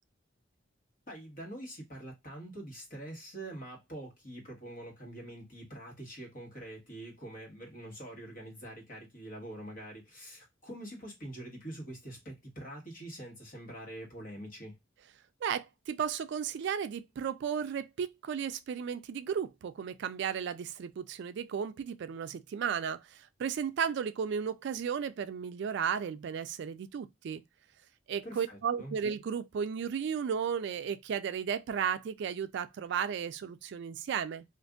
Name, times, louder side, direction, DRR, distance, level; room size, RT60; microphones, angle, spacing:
voice 1, 1.1-14.8 28.2-29.0, right 1 dB, 45° left, 1.3 m, -45 dB
voice 2, 15.4-27.4 28.1-34.4, right 7 dB, 60° right, 0.3 m, -34 dB
2.5 x 2.5 x 3.5 m
head